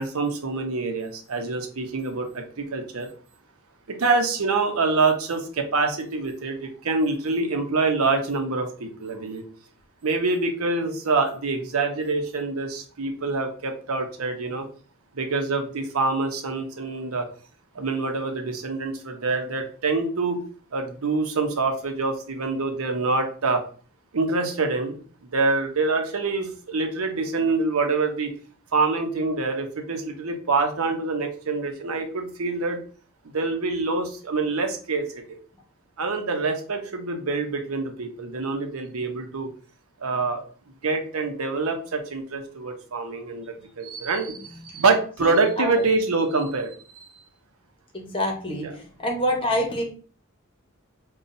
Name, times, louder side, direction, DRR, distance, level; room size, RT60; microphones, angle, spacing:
voice 1, 0.0-3.1 3.9-9.4 10.0-14.7 15.1-17.3 17.7-20.4 20.7-23.6 24.1-28.3 28.7-32.8 33.3-35.2 36.0-39.5 40.0-40.4 40.8-47.1 48.6-48.7, right 3 dB, 85° right, 5 dB, 0.7 m, -26 dB
voice 2, 47.9-49.8, equal, 25° left, 0 dB, 0.9 m, -27 dB
5.5 x 2.3 x 2.6 m, 0.41 s
head